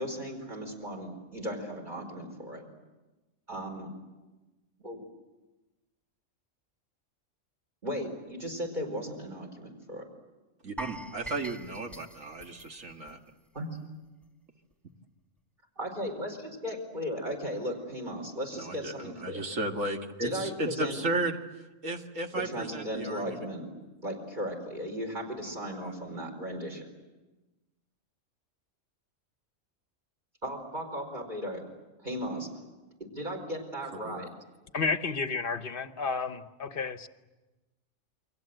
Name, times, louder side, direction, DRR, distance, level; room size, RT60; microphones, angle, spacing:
voice 1, 0.0-2.6 3.5-3.9 4.8-5.0 7.8-10.0 13.5-13.7 15.8-19.4 20.2-21.0 22.3-23.7 24.0-26.9 30.4-31.6 32.0-32.5 33.0-34.3, equal, 35° right, 2 dB, 4.8 m, -36 dB
voice 2, 10.6-13.2 18.5-21.4 21.8-23.4 25.8-25.9 34.0-34.3, right 2 dB, 70° right, 3 dB, 2.2 m, -34 dB
sound 1, 10.8-13.8 14.0-14.2 14.7-14.8, right 1 dB, ahead, 0.8 m, -44 dB
voice 3, 34.7-37.1, left 4 dB, 45° left, 10 dB, 1.2 m, -31 dB
29.0 x 23.5 x 7.9 m, 1.1 s
omnidirectional pair, 1.4 m